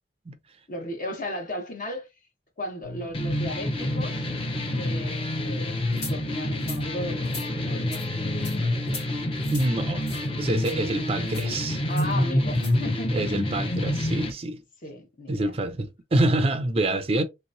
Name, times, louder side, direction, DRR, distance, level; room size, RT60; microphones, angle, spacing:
voice 1, 0.7-2.1 2.6-4.3 4.7-5.7 6.0-9.0 11.9-13.4 14.8-15.5, left 1 dB, 50° left, 1.0 m, -36 dB
sound 1, 2.8-12.7, left 1 dB, 65° left, 1.8 m, -38 dB
sound 2, 3.1-14.3, left 1 dB, 30° left, 0.6 m, -28 dB
sound 3, 6.0-6.1 6.6-6.8 7.2-7.5 7.9-8.1 8.4-8.6 8.9-9.1 9.4-9.7 10.1-10.3 10.6-10.7 11.3-11.5 12.0-12.1 12.5-12.7, left 3 dB, 85° left, 2.1 m, -39 dB
voice 2, 9.5-11.8 13.1-14.6 15.3-17.2, right 2 dB, 35° right, 0.4 m, -26 dB
3.3 x 2.9 x 2.6 m
head